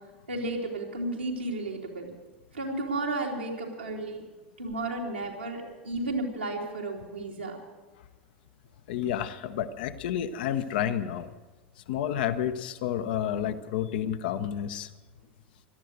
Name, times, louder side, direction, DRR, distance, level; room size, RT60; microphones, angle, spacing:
voice 1, 0.3-2.1 2.5-4.2 4.6-7.6, right 2 dB, 80° right, -2 dB, 2.9 m, -33 dB
voice 2, 8.9-11.3 11.9-14.9, left 10 dB, 55° left, 9 dB, 0.9 m, -30 dB
17.5 x 12.5 x 6.5 m, 1.2 s
figure-of-eight pair, 85°, 6 cm